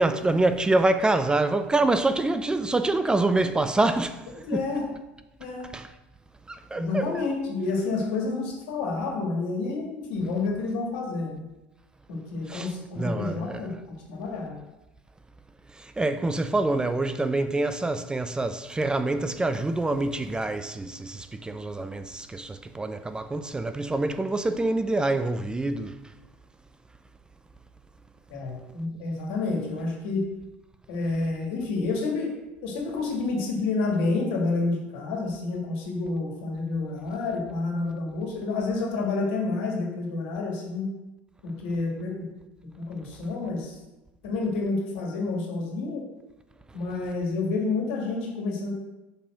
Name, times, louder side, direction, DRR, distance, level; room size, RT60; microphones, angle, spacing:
voice 1, 0.0-4.2 4.5-4.6 5.7-5.9 6.5-7.1 12.5-12.7 13.0-13.6 16.0-25.9, right 2 dB, 15° right, 0.5 m, -26 dB
voice 2, 4.5-4.9 5.4-5.7 6.7-11.4 12.1-14.6 28.3-30.2 30.9-32.3 32.6-40.9 41.4-42.3 42.8-43.8 44.2-46.0 46.7-48.7, left 3 dB, 75° left, 1.9 m, -29 dB
5.5 x 4.2 x 6.0 m
hypercardioid pair, 85°, 6 cm